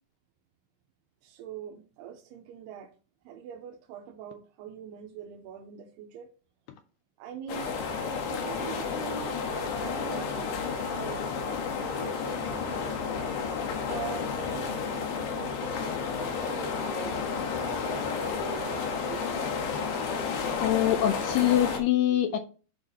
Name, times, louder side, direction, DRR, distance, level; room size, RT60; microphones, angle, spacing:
voice 1, 1.2-2.9 3.3-6.3 7.2-7.8 8.1-10.6 10.9-11.2 11.8-13.1 13.9-17.2 17.4-19.5, right 9 dB, 85° right, 2.7 m, -43 dB
sound 1, 7.5-21.8, left 5 dB, 70° left, 2.9 m, -31 dB
voice 2, 20.6-22.4, left 12 dB, 85° left, 1.9 m, -24 dB
12.0 x 4.8 x 2.8 m
omnidirectional pair, 4.6 m